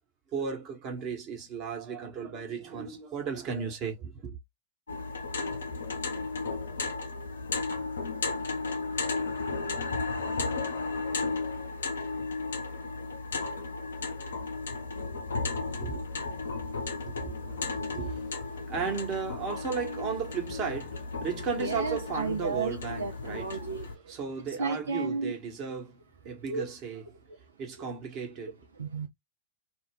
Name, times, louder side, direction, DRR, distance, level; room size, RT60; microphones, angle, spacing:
voice 1, 0.3-4.4 15.8-16.0 16.9-23.5 24.1-26.0 26.2-27.0 27.6-28.6, right 6 dB, 35° right, 1.1 m, -35 dB
sound 1, 4.9-23.9, left 3 dB, 70° left, 0.6 m, -34 dB
voice 2, 21.6-25.3 26.5-26.6 27.3-27.4 28.4-29.1, right 4 dB, 75° right, 0.4 m, -34 dB
2.4 x 2.1 x 3.5 m
figure-of-eight pair, 95°, 0 cm